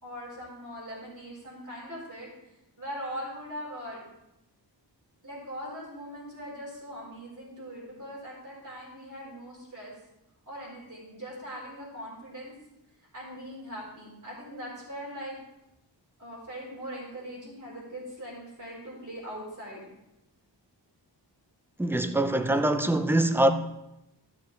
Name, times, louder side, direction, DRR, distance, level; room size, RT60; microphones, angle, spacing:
voice 1, 0.0-2.3 2.8-4.0 5.2-9.9 10.5-12.5 13.1-15.4 16.2-19.8, equal, 45° right, 4.1 m, -41 dB
voice 2, 21.8-23.5, right 1 dB, 5° right, 0.5 m, -23 dB
13.5 x 6.6 x 3.3 m
wide cardioid pair, 135°, 44 cm